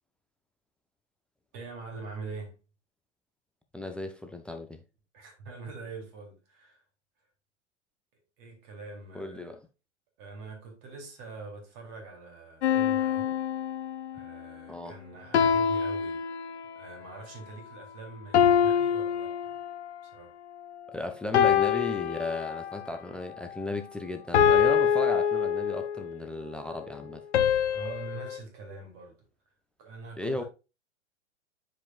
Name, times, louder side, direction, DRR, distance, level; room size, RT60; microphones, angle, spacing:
voice 1, 1.5-2.6 5.1-6.8 8.4-9.5 10.2-13.4 14.1-16.2 16.7-19.6 20.0-20.3 27.0-27.2 27.7-29.2 29.8-30.4, right 3 dB, 45° right, 3.2 m, -44 dB
voice 2, 3.7-4.8 9.1-9.6 14.7-15.0 20.9-27.2 30.2-30.4, left 2 dB, 5° left, 0.4 m, -35 dB
sound 1, 12.6-14.3 15.3-16.8 18.3-20.0 21.3-22.9 24.3-26.1 27.3-28.4, left 8 dB, 65° left, 1.0 m, -25 dB
10.0 x 5.0 x 2.4 m
figure-of-eight pair, 105°, 36 cm